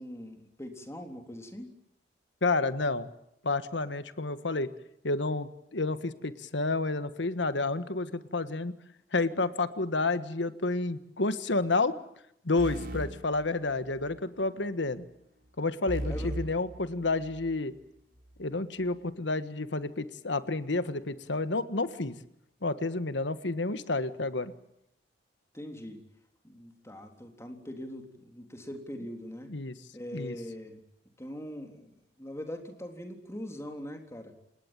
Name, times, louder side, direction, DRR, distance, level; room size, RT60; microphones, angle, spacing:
voice 1, 0.0-1.7 16.1-16.3 25.5-26.0 26.4-29.5 29.9-30.8 31.2-34.3, left 1 dB, 15° left, 4 dB, 3.7 m, -42 dB
voice 2, 2.4-3.1 3.4-4.7 5.0-8.7 9.1-11.9 12.4-15.1 15.6-17.7 18.4-22.1 22.6-24.5 29.5-29.8 30.1-30.3, left 3 dB, 80° left, 12 dB, 1.5 m, -30 dB
sound 1, 12.6-14.2 15.9-17.6, right 1 dB, 55° right, 4.9 m, -38 dB
28.5 x 19.0 x 9.1 m, 0.77 s
head